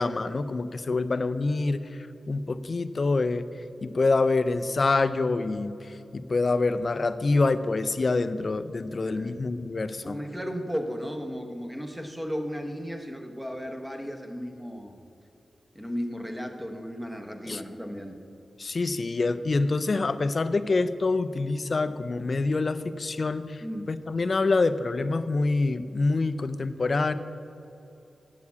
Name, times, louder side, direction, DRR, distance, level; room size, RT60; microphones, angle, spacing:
voice 1, 0.0-3.4 3.8-10.2 17.5-17.6 18.6-27.1, left 3 dB, 45° left, 12 dB, 0.4 m, -26 dB
voice 2, 9.0-9.4 10.0-14.9 15.7-18.2 23.6-23.9, equal, 5° right, 4 dB, 0.9 m, -35 dB
8.3 x 6.7 x 8.4 m, 2.8 s
wide cardioid pair, 100°, 0 cm